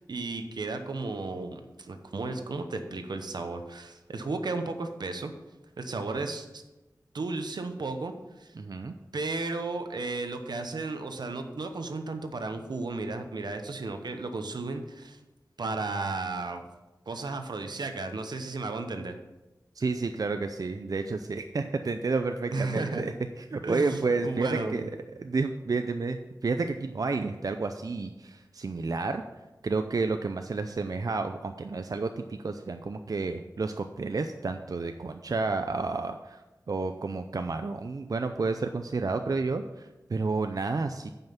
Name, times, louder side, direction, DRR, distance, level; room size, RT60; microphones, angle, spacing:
voice 1, 0.0-5.3 5.8-6.6 7.1-8.5 9.1-15.2 15.6-16.6 17.1-19.2 22.5-23.0 23.6-24.9, right 3 dB, 85° right, 7 dB, 0.9 m, -34 dB
voice 2, 8.6-8.9 19.8-23.1 23.4-24.9 25.2-29.2 29.6-41.1, right 3 dB, 60° right, 7 dB, 0.5 m, -30 dB
9.1 x 5.6 x 5.8 m, 1.1 s
wide cardioid pair, 55°, 7 cm